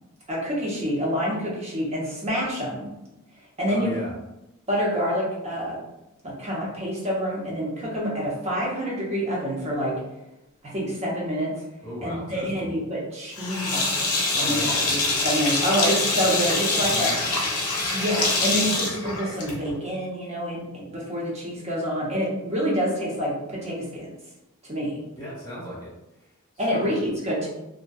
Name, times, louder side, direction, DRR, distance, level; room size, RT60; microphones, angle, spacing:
voice 1, 0.3-2.9 3.6-3.9 4.7-5.8 6.2-9.9 10.6-11.5 12.0-14.1 14.4-14.6 14.9-17.1 17.9-24.1 24.6-24.9 26.6-27.5, equal, 30° right, -5 dB, 0.7 m, -27 dB
voice 2, 3.7-4.1 11.8-12.7 14.3-15.0 16.9-17.4 25.2-25.9 26.2-26.9, equal, 20° left, -7 dB, 1.0 m, -36 dB
Sink (filling or washing), 13.4-19.8, left 3 dB, 80° left, 0.6 m, -25 dB
2.6 x 2.2 x 2.2 m, 0.92 s
head